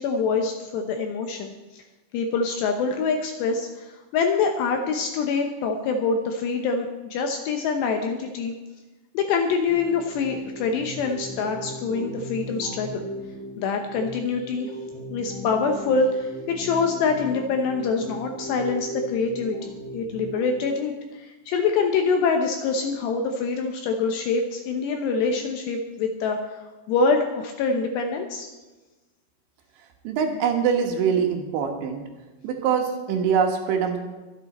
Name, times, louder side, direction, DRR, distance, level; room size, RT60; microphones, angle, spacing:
voice 1, 0.0-1.8 2.1-8.6 9.1-13.1 13.6-14.7 15.1-28.5, left 4 dB, 75° left, 4 dB, 2.6 m, -25 dB
sound 1, 9.7-20.7, right 1 dB, 40° left, 3.8 m, -37 dB
voice 2, 30.0-32.0 32.4-34.0, right 7 dB, 70° right, 3 dB, 3.4 m, -23 dB
23.5 x 8.1 x 4.2 m, 1.2 s
omnidirectional pair, 5.8 m